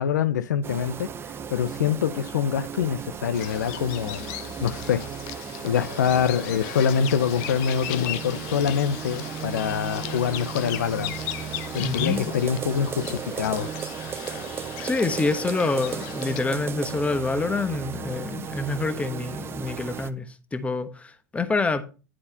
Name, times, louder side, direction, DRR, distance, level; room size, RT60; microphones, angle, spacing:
voice 1, 0.0-5.0 5.6-11.1 11.7-13.7, left 8 dB, 85° left, 0.6 m, -25 dB
sound 1, 0.6-20.1, right 7 dB, 25° right, 0.6 m, -35 dB
Bird vocalization bird call bird song, 3.3-16.4, left 13 dB, 60° left, 0.9 m, -37 dB
voice 2, 11.8-12.3 14.8-21.8, left 3 dB, 15° left, 1.1 m, -27 dB
10.0 x 4.3 x 5.5 m
hypercardioid pair, 105°, 9 cm